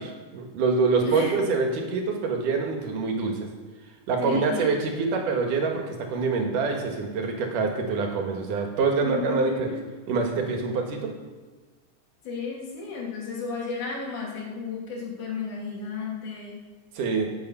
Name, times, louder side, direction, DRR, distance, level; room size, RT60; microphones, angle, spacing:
voice 1, 0.0-3.5 4.1-9.7 10.1-11.1 17.0-17.3, right 4 dB, 85° right, 2 dB, 3.3 m, -25 dB
voice 2, 1.0-1.4 4.2-4.7 9.0-9.8 12.2-16.6, left 4 dB, 70° left, -4 dB, 4.3 m, -33 dB
16.5 x 8.6 x 5.7 m, 1.4 s
omnidirectional pair, 3.6 m